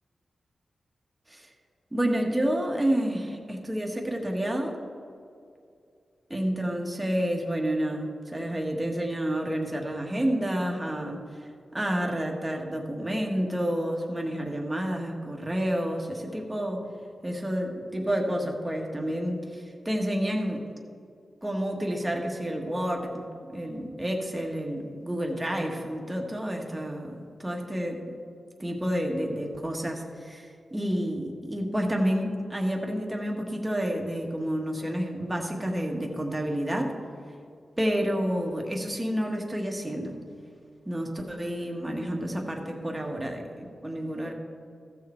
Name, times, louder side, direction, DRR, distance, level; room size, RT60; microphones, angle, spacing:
voice 1, 1.9-4.8 6.3-11.2 11.7-16.8 17.2-20.6 21.4-23.2 23.5-28.0 28.6-36.9 37.8-40.1 40.8-44.3, equal, 10° right, 0 dB, 1.3 m, -29 dB
15.0 x 6.6 x 4.3 m, 2.4 s
wide cardioid pair, 120°, 0 cm